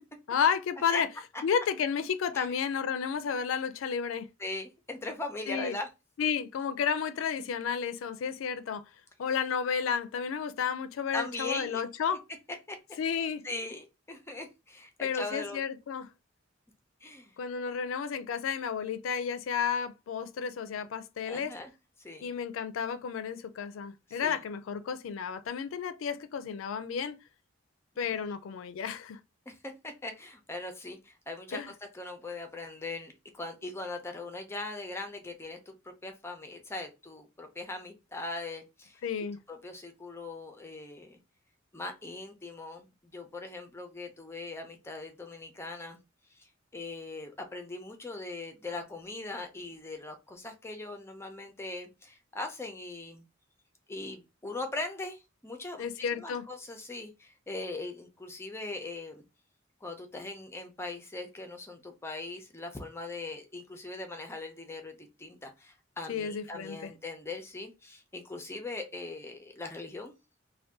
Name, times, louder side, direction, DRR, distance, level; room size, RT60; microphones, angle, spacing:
voice 1, 0.3-1.1 1.4-4.3 5.5-5.8 6.2-8.8 9.2-12.2 13.0-13.4 15.0-16.1 17.4-21.5 22.2-27.2 28.0-29.2 31.5-31.7 39.0-39.4 55.8-56.4 66.1-66.9, left 7 dB, 85° left, 0.4 m, -32 dB
voice 2, 4.4-5.9 7.4-7.5 11.1-11.8 12.1-12.2 12.7-12.8 13.4-15.6 17.0-17.4 21.3-21.7 22.0-22.3 24.1-24.4 28.1-28.2 29.5-31.6 31.9-39.0 39.5-41.2 41.7-46.0 46.3-53.2 53.9-59.2 59.8-70.2, left 2 dB, 15° left, 0.5 m, -40 dB
2.5 x 2.2 x 3.5 m
head